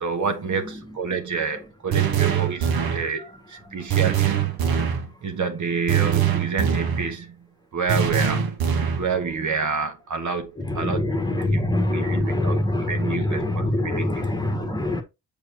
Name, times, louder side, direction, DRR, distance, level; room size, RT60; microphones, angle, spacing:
voice 1, 0.0-4.3 5.2-7.5 7.7-8.5 9.0-11.0 11.5-11.6 11.9-14.0, right 5 dB, 50° right, 1.3 m, -28 dB
voice 2, 0.6-1.0 2.6-2.8 3.2-3.3 3.7-4.0 10.6-15.0, left 1 dB, 10° left, 1.4 m, -25 dB
sound 1, 1.9-3.1 3.9-5.1 5.9-7.1 7.9-9.1, right 8 dB, 65° right, 1.3 m, -22 dB
7.0 x 5.1 x 2.9 m
cardioid pair, 100°, 39 cm